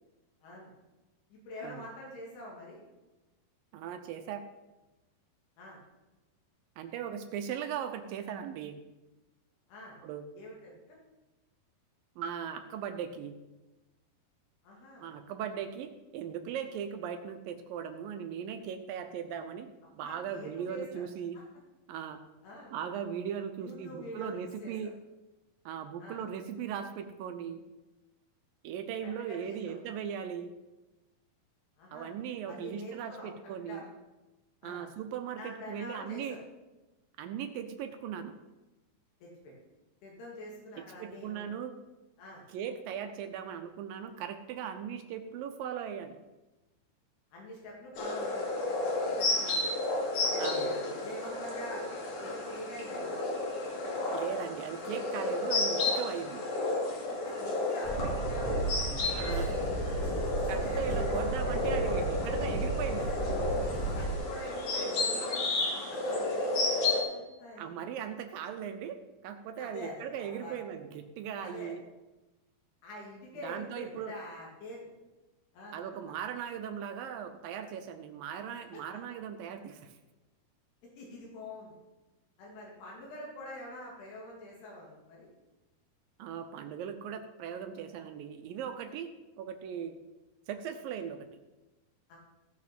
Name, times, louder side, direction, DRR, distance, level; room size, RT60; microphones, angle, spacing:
voice 1, 0.4-0.7 1.3-2.8 5.6-5.8 9.7-10.0 10.3-11.0 14.6-15.1 20.0-21.0 21.3-21.4 22.4-22.8 23.6-24.9 26.0-26.2 29.2-29.8 31.8-32.1 32.4-33.3 33.6-33.9 34.6-34.9 35.4-36.4 39.2-39.5 40.0-41.4 42.2-42.4 47.3-49.6 50.2-51.9 52.2-53.3 57.1-59.1 60.1-60.8 63.7-66.7 67.1-67.9 69.6-70.5 71.4-71.7 72.8-74.9 75.5-76.0 78.7-78.8 81.0-81.8 82.4-85.3 92.1-92.2, equal, 85° left, -3 dB, 4.3 m, -46 dB
voice 2, 3.7-4.4 6.8-8.8 10.0-10.3 12.2-13.4 15.0-21.4 21.9-22.2 22.7-24.9 25.7-27.6 28.6-30.5 31.9-33.8 34.6-36.4 37.2-38.3 40.8-41.8 42.5-46.2 50.4-50.7 54.1-56.4 59.2-59.6 60.5-63.1 67.6-71.8 73.4-74.1 75.7-80.0 86.2-90.0 90.5-91.3, right 8 dB, 75° right, 7 dB, 2.2 m, -38 dB
sound 1, 48.0-67.0, left 2 dB, 55° left, 3.5 m, -32 dB
Train, 57.8-64.1, right 2 dB, 15° left, 1.4 m, -34 dB
16.5 x 6.1 x 5.9 m, 1.1 s
omnidirectional pair, 4.5 m